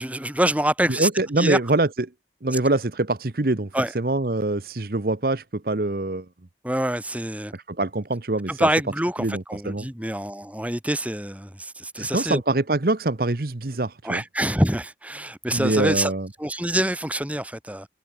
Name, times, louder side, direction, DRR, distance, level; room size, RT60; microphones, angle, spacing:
voice 1, 0.0-1.1 1.4-1.6 2.5-2.6 3.7-3.9 6.6-7.5 8.5-12.4 14.0-16.1 16.4-17.9, right 1 dB, 10° right, 3.2 m, -25 dB
voice 2, 0.9-2.1 2.4-6.3 7.5-8.7 9.2-9.9 11.9-14.2 15.5-16.3, right 2 dB, 55° right, 1.0 m, -24 dB
head